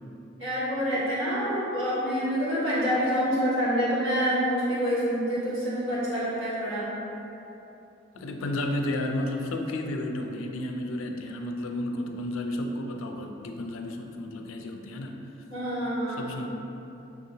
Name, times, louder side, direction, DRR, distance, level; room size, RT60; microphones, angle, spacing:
voice 1, 0.4-6.9 15.5-16.3, equal, 80° right, -10 dB, 1.5 m, -27 dB
voice 2, 8.2-15.2 16.2-16.5, left 1 dB, 90° left, 3 dB, 0.4 m, -32 dB
5.7 x 2.8 x 2.7 m, 3.0 s
head